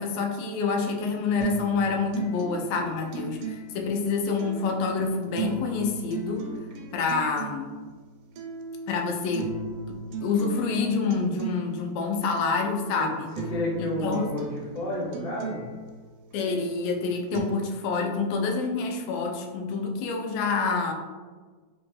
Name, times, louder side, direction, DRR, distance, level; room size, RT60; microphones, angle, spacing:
voice 1, 0.0-6.5 6.9-7.7 8.9-9.6 9.9-13.4 13.8-14.3 16.3-20.9, left 4 dB, 90° left, 2 dB, 2.2 m, -27 dB
sound 1, 1.4-17.4, right 5 dB, 80° right, 1.9 m, -37 dB
voice 2, 13.5-15.6, left 1 dB, 55° left, -7 dB, 0.9 m, -30 dB
5.4 x 2.6 x 2.3 m, 1.4 s
omnidirectional pair, 3.7 m